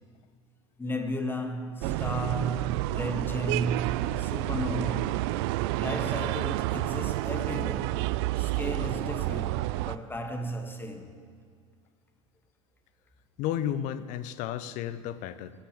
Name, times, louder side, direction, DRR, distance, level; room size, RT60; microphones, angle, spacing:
voice 1, 0.8-5.3 5.7-8.0 8.4-11.1, equal, 15° left, 1.9 m, -34 dB
sound 1, 1.8-10.0, right 18 dB, 55° right, 0.5 m, -29 dB
voice 2, 13.4-15.5, left 10 dB, 50° left, 0.9 m, -32 dB
22.5 x 8.9 x 7.1 m
figure-of-eight pair, 70°, 16 cm